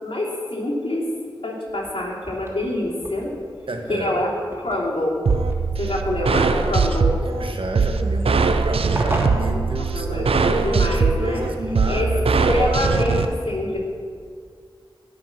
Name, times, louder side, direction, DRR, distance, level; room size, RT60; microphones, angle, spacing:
voice 1, 0.0-1.0 1.4-3.3 3.9-5.2 5.8-7.1 9.9-11.5 11.9-12.1 12.4-13.8, left 1 dB, 70° left, -5 dB, 3.3 m, -25 dB
sound 1, 1.7-10.4, equal, 20° right, 3.1 m, -37 dB
voice 2, 3.7-4.2 7.4-12.9, right 2 dB, 70° right, 3 dB, 1.4 m, -29 dB
sound 2, 5.3-13.2, right 4 dB, 90° right, 0.5 m, -21 dB
17.0 x 5.8 x 6.1 m, 2.1 s
cardioid pair, 40°, 10 cm